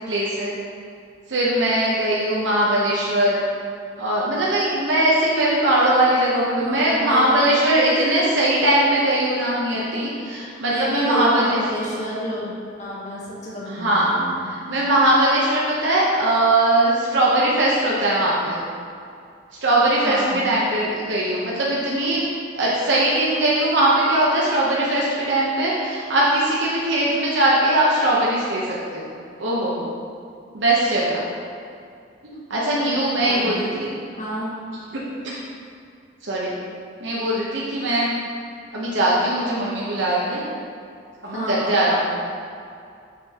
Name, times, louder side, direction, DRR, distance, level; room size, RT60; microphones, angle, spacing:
voice 1, 0.1-0.5 1.3-3.4 4.0-11.6 13.6-14.1 14.4-18.6 19.6-22.2 22.5-29.1 29.4-29.9 30.5-31.3 32.2-33.9 35.2-35.4 36.2-36.5 37.0-38.1 38.7-40.4 41.2-42.0, right 1 dB, 70° right, -6 dB, 0.9 m, -20 dB
voice 2, 6.6-7.4 10.7-12.5 12.8-14.4 20.0-20.4 33.2-33.7 34.1-34.5 41.3-41.7, equal, 40° left, -6 dB, 1.5 m, -29 dB
6.9 x 6.4 x 2.9 m, 2.4 s
head